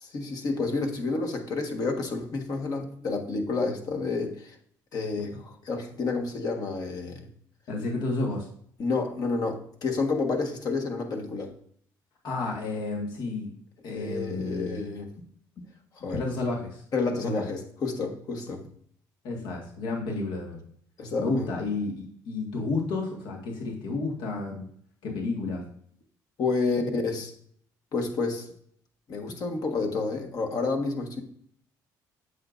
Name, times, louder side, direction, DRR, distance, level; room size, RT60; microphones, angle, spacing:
voice 1, 0.0-4.5 4.9-7.3 8.8-11.5 13.8-15.1 16.0-16.2 16.9-18.6 21.0-21.5 26.4-27.3 27.9-28.5 29.1-31.2, left 3 dB, 55° left, 1.5 m, -30 dB
voice 2, 7.7-8.5 12.2-13.5 13.8-14.8 16.1-16.8 17.2-17.4 19.2-20.6 21.2-24.7 25.0-25.6, left 3 dB, 70° left, 1.8 m, -31 dB
8.4 x 6.6 x 2.6 m
cardioid pair, 100°, 8 cm